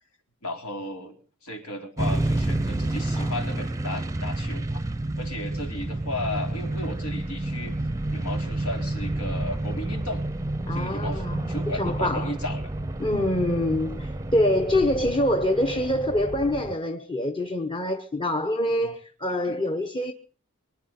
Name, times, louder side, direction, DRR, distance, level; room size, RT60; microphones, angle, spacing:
voice 1, 0.4-1.2 1.4-4.9 5.2-7.7 8.1-10.2 10.7-12.7 18.8-18.9 19.4-19.6, left 1 dB, 85° left, 4.2 m, -34 dB
sound 1, 2.0-16.8, right 1 dB, 15° right, 0.7 m, -30 dB
voice 2, 10.7-12.3 13.0-20.1, left 1 dB, 25° left, 0.9 m, -25 dB
24.5 x 9.6 x 5.8 m
head